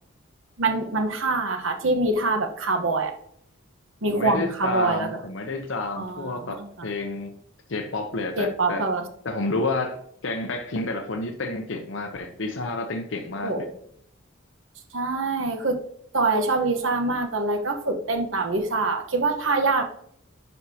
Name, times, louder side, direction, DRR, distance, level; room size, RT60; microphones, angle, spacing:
voice 1, 0.6-3.1 4.0-5.1 6.0-6.4 8.4-9.0 13.4-13.7 14.9-15.8 16.1-19.8, right 3 dB, 70° right, 5 dB, 1.2 m, -24 dB
voice 2, 4.1-7.3 7.7-8.9 9.2-10.0 10.2-13.7, left 2 dB, 65° left, 5 dB, 0.7 m, -30 dB
11.0 x 5.4 x 2.8 m, 0.69 s
head